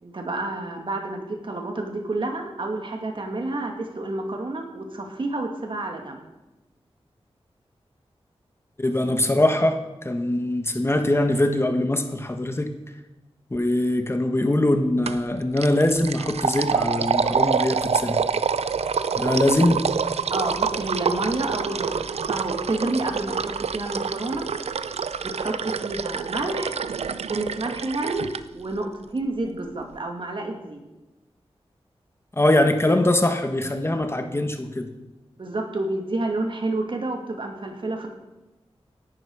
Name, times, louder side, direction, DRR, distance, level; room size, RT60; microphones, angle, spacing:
voice 1, 0.0-6.2 20.3-24.4 25.2-26.8 27.3-28.2 28.5-30.8 35.4-38.1, right 2 dB, 55° right, 2 dB, 2.5 m, -29 dB
voice 2, 8.8-12.7 13.5-18.2 19.2-19.8 32.4-34.9, left 1 dB, 25° left, 6 dB, 1.3 m, -22 dB
sound 1, 15.1-15.3 15.6-28.4, right 6 dB, 90° right, 0.6 m, -27 dB
17.5 x 11.5 x 4.9 m, 1.0 s
wide cardioid pair, 85°, 10 cm